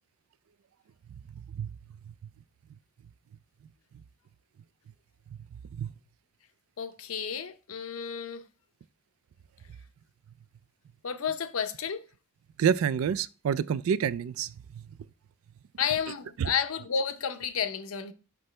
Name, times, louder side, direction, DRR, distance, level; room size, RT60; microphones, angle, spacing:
voice 1, 1.3-1.7 2.1-2.2 5.7-5.9 12.6-14.8 16.4-16.5, right 7 dB, 80° right, 0.3 m, -28 dB
voice 2, 6.8-8.4 11.0-12.0 15.8-18.1, left 7 dB, 85° left, 0.6 m, -31 dB
6.0 x 5.4 x 3.2 m
head